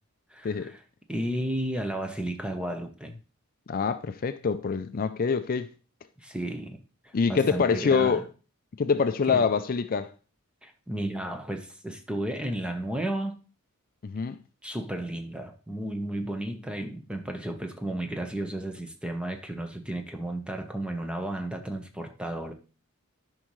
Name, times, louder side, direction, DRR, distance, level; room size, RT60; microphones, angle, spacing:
voice 1, 0.3-0.8 1.1-3.1 6.2-8.3 9.3-9.5 10.6-13.4 14.6-22.5, right 1 dB, 5° right, 0.9 m, -33 dB
voice 2, 3.7-5.7 7.1-8.2 8.8-10.1 14.0-14.4, left 5 dB, 45° left, 0.4 m, -25 dB
12.5 x 5.4 x 3.1 m
head